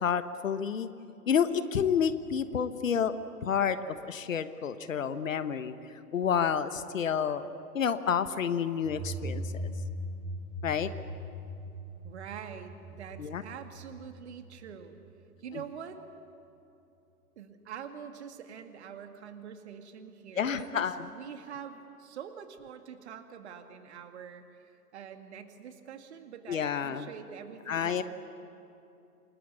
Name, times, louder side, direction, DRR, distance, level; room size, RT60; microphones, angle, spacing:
voice 1, 0.0-0.9 1.3-3.1 3.4-5.7 6.1-7.5 7.7-9.7 10.6-10.9 13.2-13.4 20.4-21.1 26.5-27.1 27.7-28.0, left 7 dB, 55° left, 12 dB, 1.3 m, -29 dB
sound 1, 8.8-15.4, equal, 25° right, 2.9 m, -40 dB
voice 2, 12.0-15.0 15.4-16.0 17.4-28.0, right 7 dB, 45° right, 7 dB, 2.2 m, -45 dB
28.0 x 21.5 x 8.5 m, 2.8 s
figure-of-eight pair, 120°, 46 cm